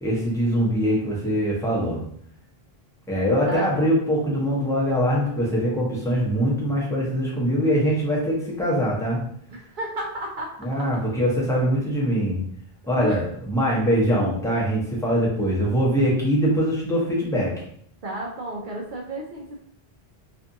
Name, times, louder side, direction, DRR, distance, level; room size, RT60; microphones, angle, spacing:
voice 1, 0.0-2.0 3.1-9.2 10.6-12.4 12.9-17.6, equal, 5° left, -5 dB, 0.6 m, -23 dB
voice 2, 3.4-3.9 9.5-10.9 12.9-13.3 18.0-19.6, right 1 dB, 60° right, -1 dB, 0.6 m, -33 dB
2.5 x 2.5 x 2.5 m, 0.64 s
omnidirectional pair, 1.0 m